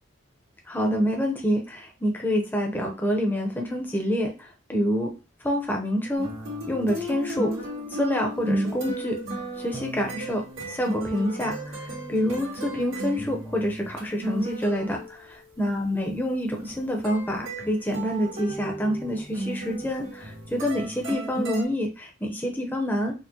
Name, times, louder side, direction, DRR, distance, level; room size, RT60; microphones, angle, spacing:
voice 1, 0.7-5.1 5.4-6.3 6.7-7.5 7.9-9.2 9.6-10.4 10.7-15.2 15.6-23.1, equal, 10° left, 1 dB, 0.6 m, -27 dB
sound 1, 6.1-21.6, right 1 dB, 85° right, 1.9 m, -34 dB
4.4 x 2.1 x 2.8 m, 0.32 s
head